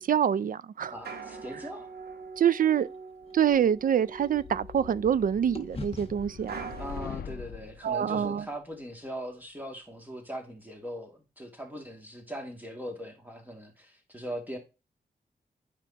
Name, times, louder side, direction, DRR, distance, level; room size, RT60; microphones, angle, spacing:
voice 1, 0.0-0.9 2.4-2.9 3.3-6.7 7.8-8.4, right 9 dB, 60° right, 0.4 m, -26 dB
sound 1, 0.8-7.2, right 4 dB, 90° right, 1.1 m, -44 dB
voice 2, 0.9-1.9 6.8-14.6, equal, 10° right, 2.3 m, -40 dB
sound 2, 2.8-5.2 5.5-9.8, left 3 dB, 40° left, 1.1 m, -47 dB
sound 3, 4.1-7.8, left 8 dB, 75° left, 0.4 m, -43 dB
8.9 x 5.1 x 2.9 m
cardioid pair, 75°, 16 cm